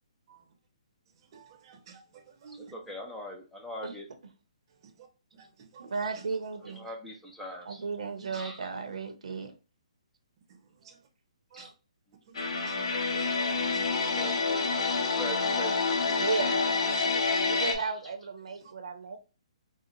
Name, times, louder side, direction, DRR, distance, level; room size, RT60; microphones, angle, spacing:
voice 1, 1.3-2.7 5.3-5.5 5.7-5.9 8.3-8.4 10.5-10.6 10.8-11.0 11.5-11.7 12.3-14.1 17.0-17.3 18.6-18.7, right 6 dB, 35° right, 0.7 m, -52 dB
voice 2, 2.5-4.1 6.7-7.8 8.3-8.6 11.5-11.7 14.0-16.2 17.4-17.9, equal, 5° left, 0.4 m, -42 dB
voice 3, 5.8-6.9 7.7-9.5 16.2-16.8 17.4-19.2, right 4 dB, 75° right, 0.7 m, -34 dB
sound 1, 12.3-17.7, left 4 dB, 55° left, 0.7 m, -28 dB
3.8 x 2.0 x 3.0 m
hypercardioid pair, 160°, 4 cm